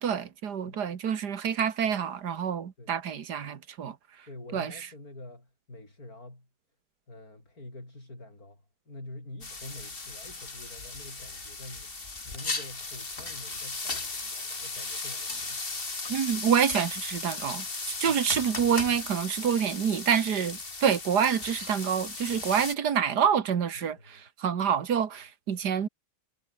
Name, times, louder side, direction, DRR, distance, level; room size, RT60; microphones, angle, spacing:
voice 1, 0.0-4.0 4.5-4.7 16.1-17.7 18.0-25.9, right 7 dB, 90° right, 2.1 m, -27 dB
voice 2, 4.2-6.5 7.1-15.8 18.0-18.4 23.7-24.2, left 2 dB, 65° left, 8.3 m, -47 dB
sound 1, 9.4-22.7, left 3 dB, 35° left, 2.5 m, -36 dB
omnidirectional pair, 1.7 m